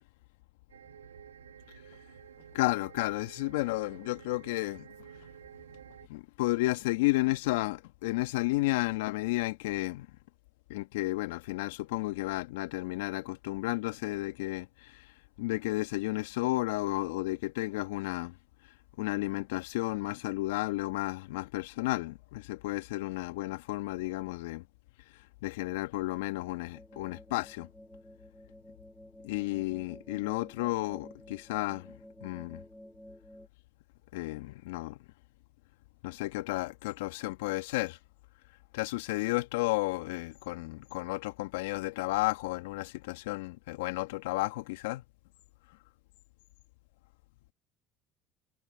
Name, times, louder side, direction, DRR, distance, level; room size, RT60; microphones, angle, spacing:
sound 1, 0.7-6.1, right 9 dB, 90° right, 4.7 m, -52 dB
voice 1, 2.5-4.9 6.1-10.1 10.7-15.1 15.4-18.4 19.0-24.7 25.4-27.7 29.2-32.6 34.1-35.0 36.0-38.0 38.7-45.0, left 20 dB, 75° left, 2.0 m, -32 dB
sound 2, 26.7-33.5, equal, ahead, 4.1 m, -52 dB
hypercardioid pair, 65°, 0 cm